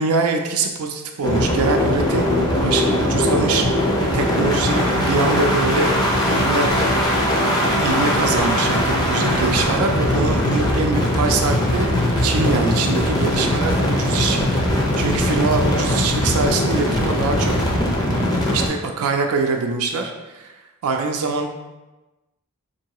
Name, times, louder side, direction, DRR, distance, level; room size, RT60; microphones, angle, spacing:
voice 1, 0.0-2.3 2.6-3.7 4.1-5.9 6.3-6.7 7.3-17.5 18.5-20.5 20.8-21.5, right 4 dB, 90° right, 3 dB, 0.4 m, -23 dB
sound 1, 1.2-18.7, left 1 dB, 20° left, 0.5 m, -20 dB
4.6 x 2.6 x 2.9 m, 1.1 s
head